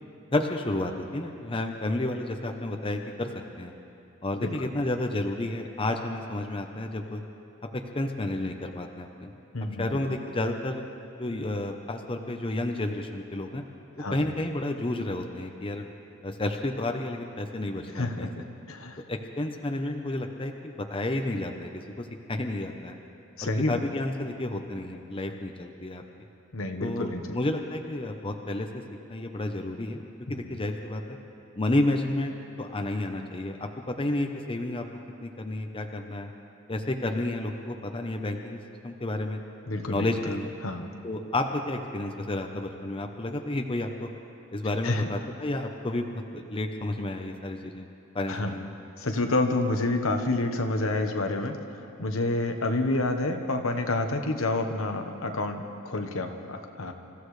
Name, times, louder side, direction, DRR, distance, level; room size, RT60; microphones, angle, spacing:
voice 1, 0.3-3.3 3.6-3.7 4.2-7.2 7.9-9.3 9.6-10.8 11.2-13.6 14.1-15.8 16.2-18.3 19.1-23.0 23.4-26.0 26.8-28.8 29.1-30.0 30.3-31.2 31.6-32.3 32.6-34.8 35.2-36.3 36.7-39.4 39.9-40.5 41.0-44.1 44.5-47.8 48.1-48.7, left 1 dB, 25° left, 4 dB, 0.8 m, -31 dB
voice 2, 9.5-9.9 14.0-14.2 17.9-19.0 23.4-23.8 26.5-27.4 39.7-40.1 40.6-40.9 44.8-45.1 48.3-48.5 49.0-51.6 52.0-56.9, left 2 dB, 75° left, 4 dB, 1.2 m, -28 dB
27.5 x 15.0 x 3.3 m, 3.0 s
head